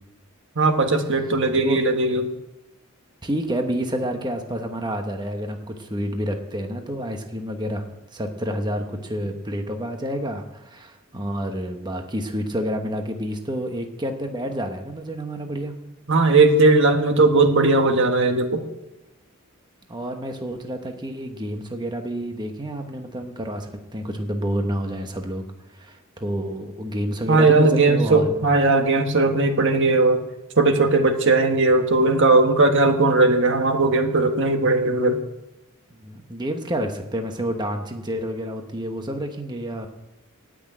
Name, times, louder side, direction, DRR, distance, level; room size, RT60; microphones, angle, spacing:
voice 1, 0.6-2.3 16.1-18.6 27.3-30.2 30.6-35.2, right 3 dB, 60° right, 6 dB, 1.4 m, -18 dB
voice 2, 3.2-7.8 8.1-15.7 19.9-25.4 25.7-28.3 36.0-39.9, equal, 20° right, 4 dB, 1.1 m, -29 dB
18.0 x 6.3 x 8.6 m, 0.95 s
head